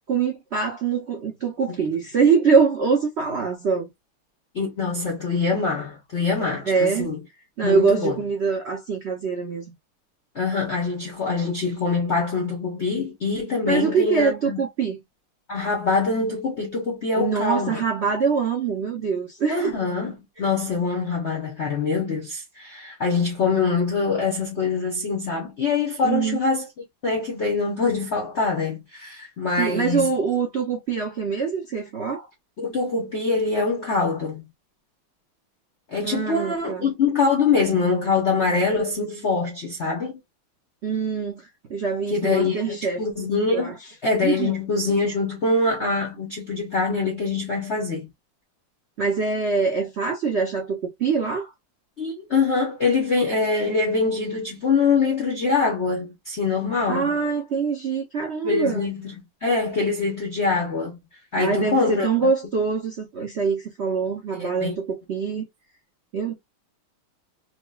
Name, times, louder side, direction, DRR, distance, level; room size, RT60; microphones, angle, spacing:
voice 1, 0.1-3.9 6.7-7.1 7.6-9.7 13.7-15.0 17.2-19.7 26.0-26.4 29.6-32.3 36.0-36.9 40.8-43.0 43.5-43.8 44.2-44.5 49.0-51.5 56.9-58.9 61.4-65.5 66.1-66.3, right 5 dB, 80° right, 0.6 m, -24 dB
voice 2, 4.5-7.2 7.6-8.2 10.3-14.6 15.5-17.8 19.5-20.1 20.4-26.6 27.0-30.1 32.6-34.4 35.9-40.2 42.1-48.1 52.0-57.1 58.4-59.1 59.4-61.0 61.3-62.1 64.4-64.8, left 4 dB, 65° left, 0.6 m, -24 dB
4.8 x 2.1 x 2.3 m
omnidirectional pair, 2.4 m